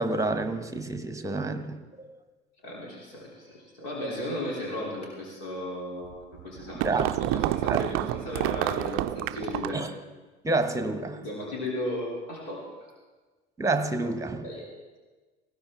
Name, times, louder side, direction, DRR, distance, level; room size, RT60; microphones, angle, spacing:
voice 1, 0.0-2.2 6.8-7.4 7.7-7.8 9.7-9.9 10.4-11.2 13.6-14.5, right 2 dB, 10° right, 1.2 m, -29 dB
voice 2, 2.6-9.8 11.2-12.9 14.4-14.7, left 1 dB, 65° left, 3.4 m, -35 dB
sound 1, 6.1-9.9, right 16 dB, 45° right, 0.5 m, -29 dB
19.5 x 15.5 x 3.7 m
figure-of-eight pair, 60°, 30 cm